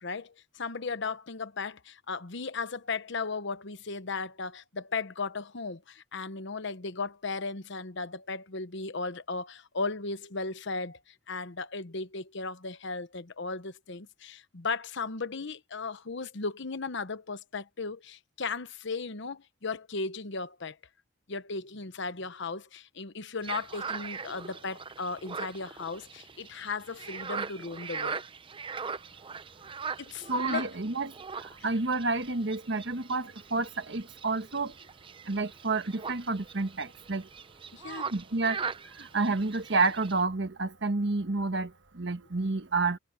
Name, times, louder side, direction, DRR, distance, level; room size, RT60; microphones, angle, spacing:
voice 1, 0.0-20.8 21.3-28.2 30.0-30.7 37.7-38.1, left 4 dB, 65° left, 1.1 m, -36 dB
sound 1, 23.4-40.2, right 5 dB, 25° right, 0.6 m, -40 dB
voice 2, 30.3-34.7 35.2-37.3 38.1-43.0, right 3 dB, 65° right, 1.4 m, -30 dB
head